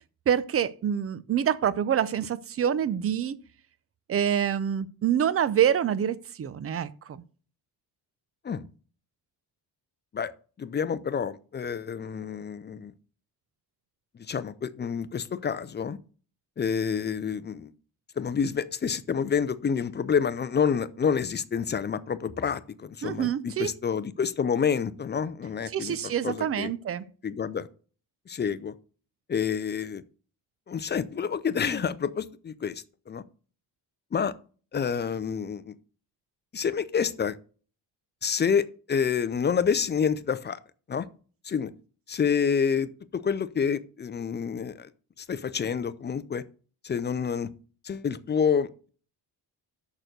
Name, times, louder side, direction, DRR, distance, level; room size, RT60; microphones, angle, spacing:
voice 1, 0.3-3.4 4.1-7.2 23.0-23.7 25.7-27.0, right 9 dB, 35° right, 0.5 m, -26 dB
voice 2, 10.6-12.9 14.3-16.0 16.6-17.7 18.2-26.7 27.2-27.7 28.3-28.7 29.3-30.0 30.7-33.2 34.1-34.3 34.7-35.7 36.5-37.4 38.2-40.6 40.9-41.1 41.4-41.7 42.1-44.9 45.2-46.4 46.8-47.5 47.8-48.9, left 7 dB, 25° left, 0.4 m, -28 dB
6.7 x 6.1 x 6.5 m
cardioid pair, 150°, 42 cm